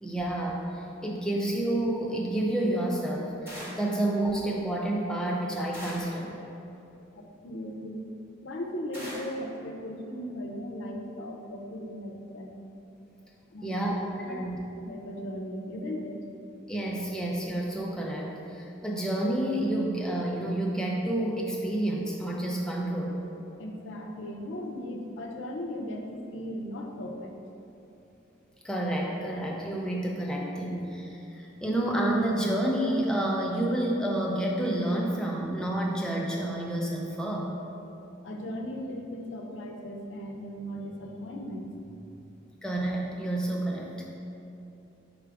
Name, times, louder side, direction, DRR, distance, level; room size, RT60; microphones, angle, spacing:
voice 1, 0.0-6.4 13.6-14.0 14.3-14.6 16.7-23.2 28.6-37.5 42.6-44.1, right 1 dB, 5° left, -2 dB, 0.4 m, -29 dB
sound 1, 3.5-4.0 5.7-6.3 8.9-9.4, equal, 10° right, 1.0 m, -41 dB
voice 2, 7.1-8.1 8.4-12.5 13.5-13.9 14.2-14.4 14.8-16.2 23.6-27.3 38.2-42.2, equal, 70° left, 2 dB, 0.5 m, -37 dB
5.0 x 2.4 x 4.5 m, 2.8 s
head